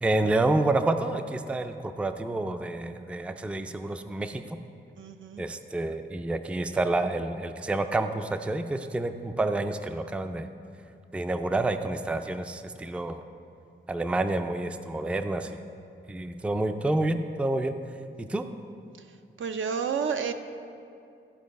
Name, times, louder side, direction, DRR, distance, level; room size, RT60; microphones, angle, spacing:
voice 1, 0.0-4.6 5.4-10.5 11.1-13.2 13.9-15.5 16.1-17.7 18.2-18.4, right 2 dB, 5° right, 8 dB, 0.3 m, -28 dB
voice 2, 5.0-5.4 19.4-20.3, right 6 dB, 75° right, 8 dB, 0.5 m, -30 dB
13.5 x 4.6 x 5.2 m, 2.6 s
wide cardioid pair, 125°, 20 cm